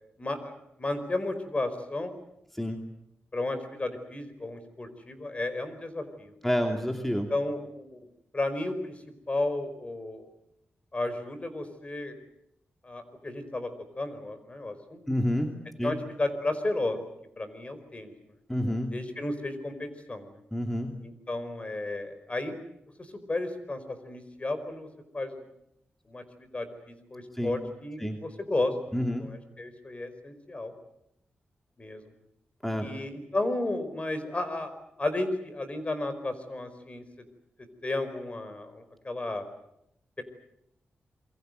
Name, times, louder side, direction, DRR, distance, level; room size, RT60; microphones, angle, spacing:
voice 1, 0.2-2.1 3.3-6.3 7.3-8.0 8.3-9.0 9.3-10.3 10.9-12.1 12.8-13.7 13.9-15.0 15.8-17.1 17.4-18.1 18.9-20.4 21.0-22.5 23.0-24.9 25.1-25.4 26.1-30.7 31.8-32.1 32.8-34.7 35.0-37.0 37.8-39.4 40.2-40.3, left 2 dB, 30° left, 10 dB, 4.9 m, -33 dB
voice 2, 6.4-7.3 15.1-15.9 18.5-19.0 20.5-21.0 27.3-27.5 28.0-28.2 28.9-29.3 32.6-32.9, equal, 5° left, 4 dB, 2.7 m, -29 dB
28.0 x 23.0 x 8.0 m, 0.80 s
cardioid pair, 80°, 4 cm